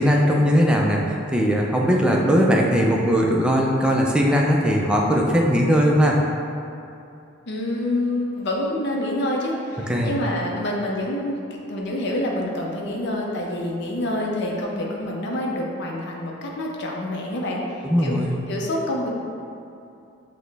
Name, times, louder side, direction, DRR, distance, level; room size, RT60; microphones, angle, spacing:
voice 1, 0.0-6.2 9.9-10.1 17.8-18.3, equal, 5° right, -2 dB, 0.4 m, -19 dB
voice 2, 7.5-11.4 11.6-18.1 18.5-19.1, left 1 dB, 60° left, -2 dB, 0.6 m, -27 dB
5.8 x 2.1 x 3.3 m, 2.7 s
head